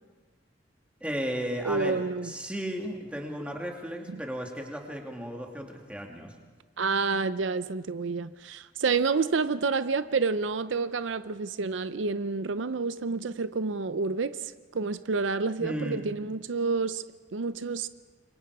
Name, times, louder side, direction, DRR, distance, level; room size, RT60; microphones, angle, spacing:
voice 1, 1.0-6.3 15.6-16.0, equal, 5° right, 2.4 m, -35 dB
voice 2, 1.7-2.3 4.1-4.2 6.8-14.4 14.7-17.1 17.3-17.9, right 4 dB, 80° right, 0.6 m, -29 dB
27.0 x 23.5 x 4.8 m
head